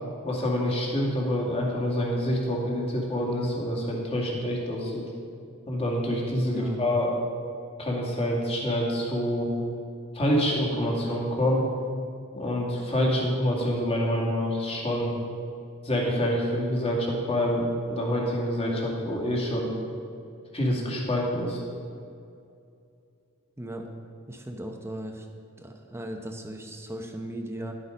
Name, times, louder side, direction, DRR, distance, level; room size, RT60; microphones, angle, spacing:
voice 1, 0.2-5.0 5.7-7.1 7.8-9.5 10.1-11.6 12.3-15.1 15.8-19.7 20.5-21.6, equal, 25° left, -2 dB, 2.2 m, -26 dB
voice 2, 6.5-6.8 23.6-23.9 24.3-25.3 25.6-27.7, right 1 dB, 10° right, 3 dB, 0.9 m, -37 dB
11.5 x 8.5 x 5.2 m, 2.5 s
head